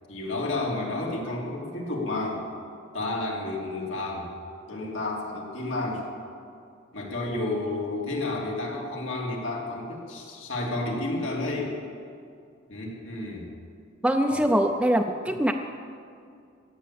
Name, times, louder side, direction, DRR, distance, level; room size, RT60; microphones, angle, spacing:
voice 1, 0.1-2.4 2.9-4.3 4.7-6.1 6.9-11.8 12.7-13.5 14.3-14.6 15.2-15.3, left 2 dB, 80° left, -2 dB, 2.9 m, -31 dB
voice 2, 14.0-15.5, right 1 dB, 5° right, 3 dB, 0.5 m, -23 dB
15.5 x 8.6 x 8.4 m, 2.4 s
head